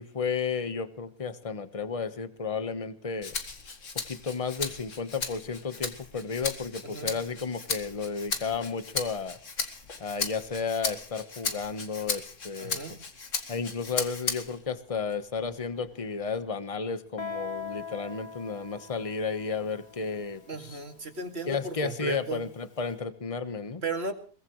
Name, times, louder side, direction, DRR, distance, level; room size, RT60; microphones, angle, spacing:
voice 1, 0.0-3.3 4.1-9.4 10.0-12.8 13.5-20.8 21.5-23.8, left 5 dB, 25° left, 11 dB, 1.2 m, -33 dB
Rattle (instrument), 3.2-14.7 15.1-16.3, left 4 dB, 60° left, 2.1 m, -36 dB
voice 2, 12.6-13.0 20.5-22.4 23.8-24.1, right 3 dB, 45° right, 5 dB, 2.5 m, -35 dB
Guitar, 17.2-22.6, left 5 dB, 85° left, 2.1 m, -42 dB
22.5 x 20.0 x 3.2 m, 0.41 s
omnidirectional pair, 1.5 m